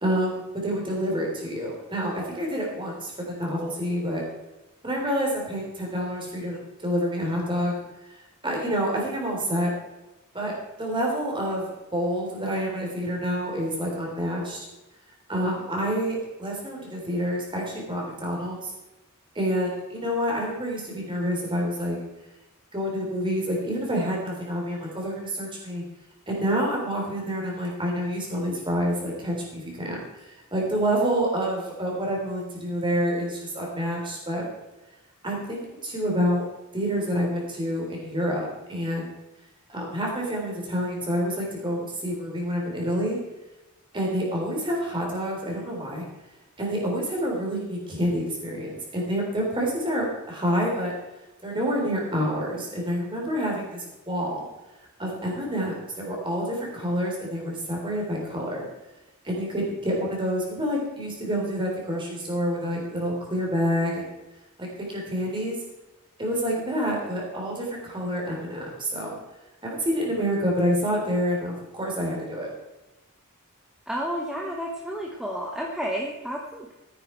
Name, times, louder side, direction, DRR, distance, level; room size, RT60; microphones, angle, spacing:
voice 1, 0.0-4.2 4.8-7.8 8.4-9.7 10.3-14.7 15.3-18.7 19.4-22.0 22.7-25.8 26.3-34.4 35.2-36.4 36.7-39.1 39.7-43.2 43.9-46.0 46.6-50.9 51.4-54.4 55.0-58.7 59.2-64.1 64.6-65.6 66.2-69.2 69.6-72.5, equal, 20° right, -1 dB, 3.6 m, -28 dB
voice 2, 73.9-76.7, equal, 5° right, -1 dB, 1.1 m, -31 dB
14.0 x 9.6 x 4.5 m, 1.0 s
head